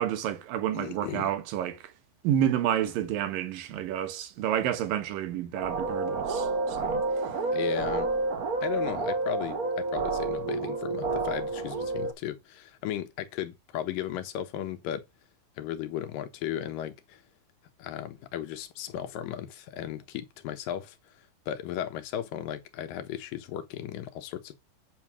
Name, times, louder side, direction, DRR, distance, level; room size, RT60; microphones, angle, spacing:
voice 1, 0.0-1.9 2.2-7.0, right 10 dB, 85° right, 2.9 m, -29 dB
voice 2, 0.7-1.3 7.5-8.1 8.6-15.1 15.6-17.2 17.8-21.0 21.5-24.5, left 11 dB, 80° left, 2.7 m, -35 dB
sound 1, 5.5-12.1, right 3 dB, 55° right, 1.0 m, -29 dB
9.1 x 4.0 x 6.1 m
omnidirectional pair, 3.9 m